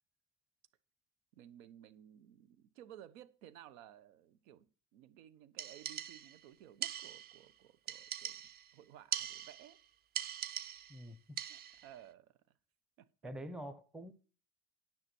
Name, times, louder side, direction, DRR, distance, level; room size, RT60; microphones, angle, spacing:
voice 1, 1.3-8.4 8.7-9.8 11.5-12.6 13.0-13.3, right 11 dB, 85° right, 1.2 m, -57 dB
sound 1, 5.6-6.4 6.8-7.4 7.9-8.7 9.1-9.8 10.1-11.0 11.4-11.9, right 10 dB, 25° right, 0.4 m, -42 dB
voice 2, 10.9-11.4 13.2-14.1, equal, ahead, 0.7 m, -46 dB
9.8 x 6.0 x 6.1 m
supercardioid pair, 125°, 39 cm